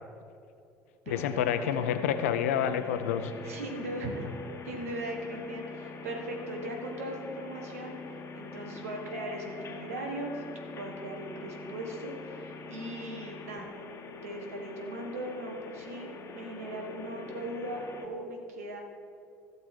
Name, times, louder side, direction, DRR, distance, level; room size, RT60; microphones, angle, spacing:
voice 1, 1.1-3.3, left 9 dB, 70° left, 10 dB, 0.7 m, -28 dB
sound 1, 1.1-18.1, left 4 dB, 35° left, 1.2 m, -44 dB
voice 2, 3.4-4.3 4.6-10.4 10.7-13.7 14.2-18.8, right 1 dB, 75° right, 3 dB, 1.5 m, -39 dB
15.5 x 6.5 x 4.6 m, 2.5 s
figure-of-eight pair, 60°, 8 cm